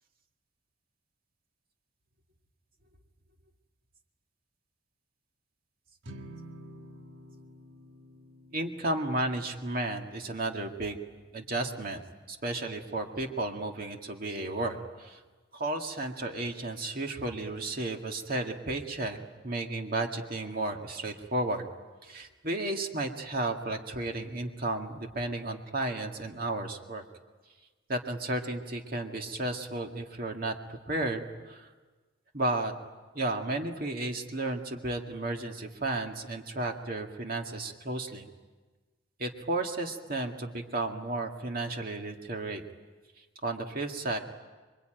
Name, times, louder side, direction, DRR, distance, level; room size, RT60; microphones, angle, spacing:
sound 1, 6.0-12.5, equal, 65° right, 1.6 m, -51 dB
voice 1, 8.5-11.0 11.3-12.0 12.3-15.2 15.5-19.2 19.4-21.7 22.0-27.0 27.9-31.7 32.3-32.7 33.1-38.3 39.2-42.6 43.4-44.2, right 2 dB, 45° right, 3 dB, 2.1 m, -33 dB
27.0 x 23.5 x 9.1 m, 1.3 s
head